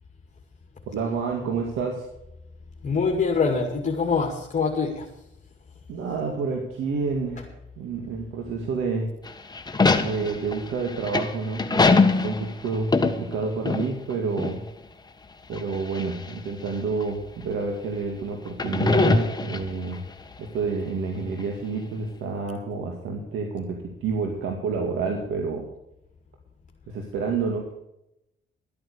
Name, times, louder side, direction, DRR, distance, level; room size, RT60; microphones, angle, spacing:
voice 1, 0.9-2.1 5.9-9.1 10.0-14.6 15.5-20.0 20.4-25.7 26.9-27.7, right 4 dB, 85° right, 2 dB, 2.2 m, -29 dB
voice 2, 2.8-5.0, left 5 dB, 40° left, 1 dB, 2.3 m, -24 dB
sound 1, 9.3-14.1 14.4-14.5 15.5-16.3 17.0-17.1 18.5-20.0, left 3 dB, 20° left, 1.4 m, -22 dB
13.0 x 8.9 x 6.8 m, 0.85 s
cardioid pair, 90°, 20 cm